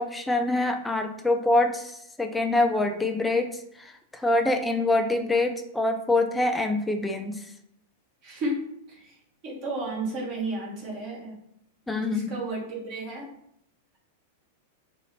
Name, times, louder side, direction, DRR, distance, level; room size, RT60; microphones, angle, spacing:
voice 1, 0.0-1.9 2.2-3.9 4.1-7.3 11.9-12.4, left 2 dB, 10° left, 4 dB, 0.4 m, -25 dB
voice 2, 8.2-9.1 9.4-11.4 11.9-13.3, right 2 dB, 45° right, -4 dB, 1.4 m, -33 dB
2.7 x 2.7 x 4.2 m, 0.72 s
figure-of-eight pair, 95°, 0 cm